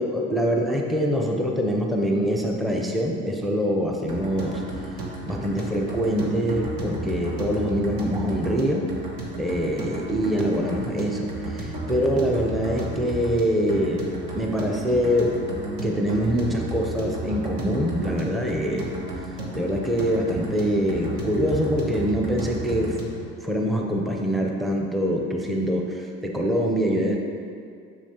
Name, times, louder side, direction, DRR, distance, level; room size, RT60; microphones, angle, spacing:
voice 1, 0.0-4.6 5.3-8.9 9.4-14.1 14.3-15.4 15.8-18.9 19.5-23.0 23.4-27.2, equal, ahead, 0 dB, 0.7 m, -24 dB
sound 1, 4.1-23.3, right 2 dB, 60° right, 1.4 m, -33 dB
7.1 x 6.5 x 2.9 m, 2.3 s
hypercardioid pair, 65°, 39 cm